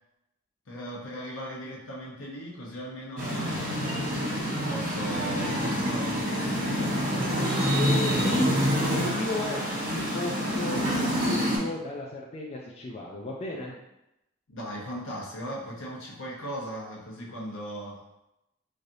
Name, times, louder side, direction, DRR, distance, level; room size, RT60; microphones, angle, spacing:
voice 1, 0.7-3.9 4.7-7.3 8.1-8.6 14.5-18.0, equal, 80° left, -3 dB, 0.8 m, -38 dB
sound 1, 3.2-11.6, equal, 45° right, 0.8 m, -27 dB
voice 2, 7.7-8.6 8.9-9.6 9.9-13.8, left 2 dB, 30° left, -2 dB, 0.3 m, -34 dB
3.2 x 2.5 x 2.6 m, 0.89 s
head